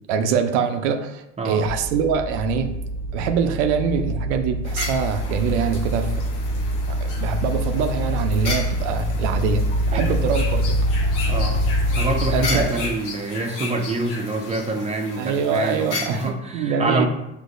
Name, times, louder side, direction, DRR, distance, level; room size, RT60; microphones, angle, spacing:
voice 1, 0.1-2.7 3.1-6.2 6.5-6.6 7.0-9.7 9.9-10.6 12.3-12.8 15.2-17.1, right 6 dB, 85° right, 7 dB, 0.5 m, -24 dB
sound 1, 1.6-12.6, equal, 45° left, 0.6 m, -24 dB
sound 2, 4.6-16.3, left 3 dB, 70° left, 1.0 m, -34 dB
voice 2, 11.3-11.6 12.0-17.1, right 2 dB, 20° right, 3 dB, 0.7 m, -26 dB
6.2 x 2.8 x 2.5 m, 0.89 s
supercardioid pair, 75°, 33 cm